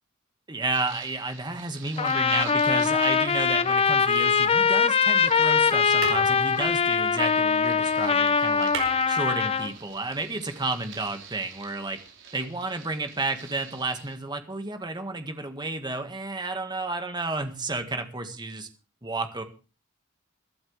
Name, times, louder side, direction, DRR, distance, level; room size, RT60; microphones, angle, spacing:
voice 1, 0.5-8.7 9.1-12.0 12.3-18.7 19.0-19.4, right 3 dB, 20° right, 6 dB, 1.7 m, -31 dB
sound 1, 0.7-14.2, right 6 dB, 60° right, 4.7 m, -48 dB
Trumpet, 2.0-9.7, left 6 dB, 30° left, 0.7 m, -22 dB
sound 2, 3.5-4.7 5.6-5.7 6.0-7.9 8.1-8.2 8.4-9.8 11.0-11.1, right 5 dB, 80° right, 4.8 m, -38 dB
23.0 x 12.0 x 3.4 m, 0.35 s
head